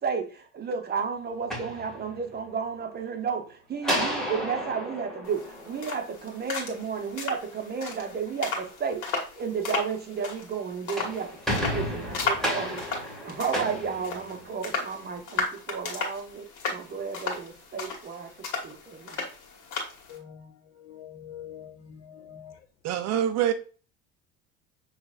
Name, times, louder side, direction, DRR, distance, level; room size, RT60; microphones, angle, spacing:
voice 1, 0.0-9.1 9.4-12.8 13.2-18.3 18.6-19.2, right 6 dB, 35° right, 1.0 m, -32 dB
sound 1, 1.3-2.5 3.8-6.3 10.7-14.8, equal, ahead, 1.9 m, -32 dB
sound 2, 5.3-20.2, left 4 dB, 80° left, 1.7 m, -35 dB
voice 2, 20.1-20.5 20.8-22.5, left 9 dB, 60° left, 1.1 m, -44 dB
voice 3, 22.8-23.5, right 11 dB, 60° right, 0.7 m, -25 dB
6.6 x 3.2 x 2.4 m
cardioid pair, 120°, 29 cm